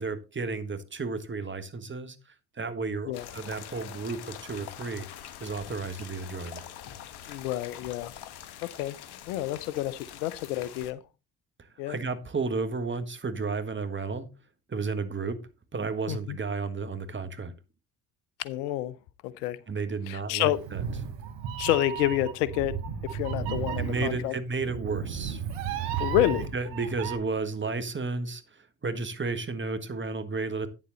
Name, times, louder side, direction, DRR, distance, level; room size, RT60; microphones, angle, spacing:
voice 1, 0.0-2.2 2.5-5.1 5.4-6.6 11.8-14.3 14.7-17.5 19.7-20.8 23.8-25.4 26.5-30.7, right 4 dB, 25° right, 1.6 m, -32 dB
sound 1, 3.1-10.9, left 10 dB, 60° left, 1.2 m, -44 dB
voice 2, 7.3-8.1 8.8-9.0 9.3-11.0 11.8-12.0 16.1-16.4 18.4-19.0 19.2-19.6 20.1-20.6 21.6-22.7 23.1-24.3 26.0-26.5, left 14 dB, 85° left, 0.8 m, -28 dB
Meow, 20.5-27.2, right 8 dB, 80° right, 1.4 m, -34 dB
9.3 x 7.3 x 4.0 m
hypercardioid pair, 60°, 46 cm